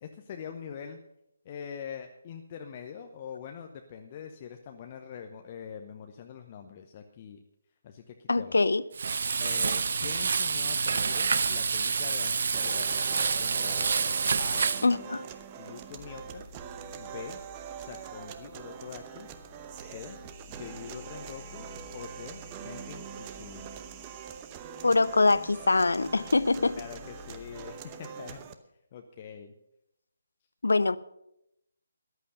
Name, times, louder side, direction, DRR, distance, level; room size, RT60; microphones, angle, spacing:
voice 1, 0.0-1.0 1.4-7.4 7.8-8.6 9.4-14.1 14.4-14.7 15.1-15.3 15.6-16.4 17.0-17.4 17.8-19.3 19.7-20.2 20.5-21.7 21.9-23.7 26.8-28.5 28.9-29.5, left 7 dB, 30° left, 5 dB, 0.8 m, -44 dB
voice 2, 8.3-8.8 14.8-15.2 24.8-26.8 30.6-31.0, left 3 dB, 65° left, 18 dB, 0.6 m, -24 dB
Frying (food), 8.9-14.9, right 5 dB, 50° right, 0.6 m, -28 dB
sound 1, 12.5-28.5, right 8 dB, 20° right, 0.9 m, -43 dB
sound 2, 16.0-27.7, left 3 dB, 15° left, 2.0 m, -52 dB
14.0 x 11.5 x 5.5 m, 0.81 s
figure-of-eight pair, 145°, 0 cm